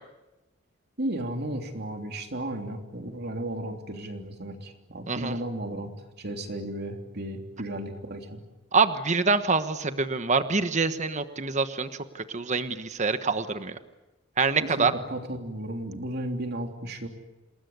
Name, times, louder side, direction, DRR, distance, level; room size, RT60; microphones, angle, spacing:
voice 1, 1.0-5.9 6.2-8.4 14.6-17.1, right 1 dB, 55° right, 4 dB, 3.4 m, -34 dB
voice 2, 8.7-11.9 12.1-13.8 14.4-14.9, right 4 dB, 35° right, 10 dB, 1.2 m, -25 dB
28.0 x 20.0 x 9.5 m, 1.1 s
head